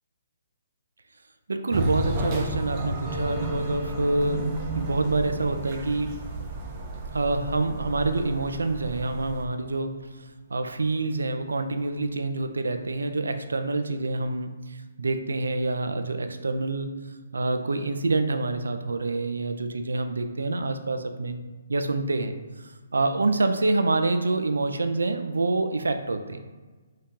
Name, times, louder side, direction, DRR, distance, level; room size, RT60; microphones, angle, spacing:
voice 1, 1.5-4.4 4.7-6.1 7.1-9.9 10.5-16.9 17.3-21.4 21.7-22.3 22.9-26.4, right 2 dB, 75° right, 8 dB, 0.3 m, -26 dB
sound 1, 1.7-9.4, right 2 dB, 30° right, 0.5 m, -32 dB
sound 2, 3.0-12.2 12.5-12.6 12.8-13.4, left 1 dB, ahead, 0.8 m, -46 dB
2.8 x 2.7 x 3.5 m, 1.3 s
figure-of-eight pair, 135°, 0 cm